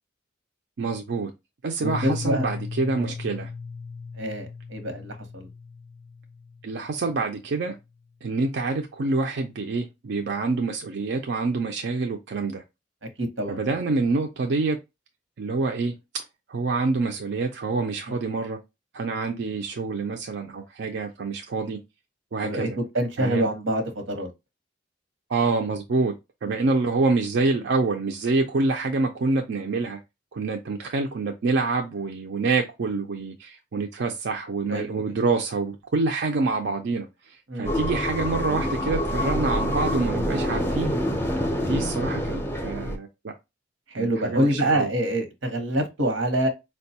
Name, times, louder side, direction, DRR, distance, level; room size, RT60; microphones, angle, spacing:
voice 1, 0.8-1.3 1.6-3.5 6.6-7.8 8.2-12.6 13.5-14.8 15.4-16.2 16.5-18.6 18.9-21.8 22.3-22.8 23.2-23.5 25.3-26.1 26.4-30.0 30.3-37.1 37.6-40.9 41.6-43.3 44.0-44.9, right 3 dB, 65° right, 0.4 m, -26 dB
Piano, 1.8-7.5, left 4 dB, 75° left, 0.4 m, -37 dB
voice 2, 1.8-2.5 3.0-3.1 4.2-5.5 13.2-13.6 18.1-18.2 22.4-24.3 26.5-26.6 34.7-35.0 37.5-37.7 43.9-46.5, right 1 dB, 90° right, 1.0 m, -26 dB
sound 1, 37.6-43.0, equal, 15° left, 0.5 m, -26 dB
4.6 x 2.2 x 2.7 m
head